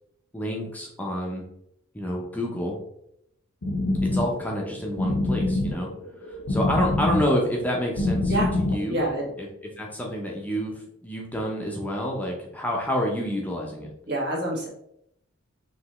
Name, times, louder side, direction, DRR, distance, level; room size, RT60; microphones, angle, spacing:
voice 1, 0.3-1.4 1.9-2.8 4.0-5.9 6.2-9.1 9.4-10.7 11.0-13.9, equal, 10° left, -1 dB, 0.6 m, -28 dB
sound 1, 3.6-9.4, left 2 dB, 60° left, 0.7 m, -26 dB
voice 2, 8.8-9.3 14.1-14.7, right 1 dB, 55° right, -3 dB, 1.5 m, -27 dB
5.0 x 3.2 x 3.0 m, 0.76 s
head